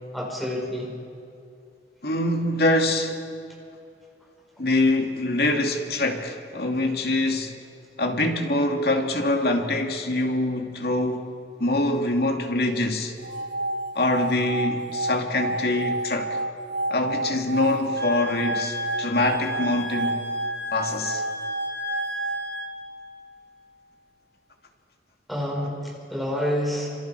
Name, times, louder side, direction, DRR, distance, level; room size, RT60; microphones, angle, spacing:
voice 1, 0.1-1.0 25.3-27.0, equal, ahead, 5.0 m, -28 dB
voice 2, 2.0-3.2 4.6-7.5 8.0-11.3 11.6-13.1 13.9-16.4 16.9-20.3 20.7-21.2, left 2 dB, 60° left, 2.5 m, -24 dB
sound 1, 13.2-23.3, right 2 dB, 85° right, 1.0 m, -30 dB
Wind instrument woodwind instrument, 18.0-22.7, left 1 dB, 65° right, 3.0 m, -35 dB
29.0 x 27.0 x 4.8 m
head